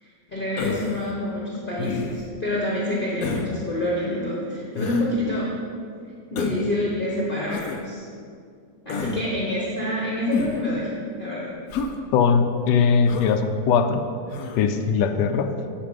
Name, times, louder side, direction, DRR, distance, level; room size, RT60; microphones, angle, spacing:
voice 1, 0.3-5.6 6.3-8.0 8.8-10.9 11.2-11.5, left 1 dB, 35° left, -5 dB, 1.1 m, -27 dB
Human voice, 0.6-1.1 1.8-2.3 3.2-3.5 4.8-5.1 6.4-6.7 7.5-7.8 8.9-9.2 10.3-10.7 11.7-12.0 13.1-13.4 14.3-14.6, left 4 dB, 65° left, 1.0 m, -29 dB
voice 2, 12.1-14.1 14.6-15.6, left 6 dB, 90° left, 8 dB, 1.3 m, -20 dB
10.0 x 4.9 x 5.2 m, 2.3 s
omnidirectional pair, 1.9 m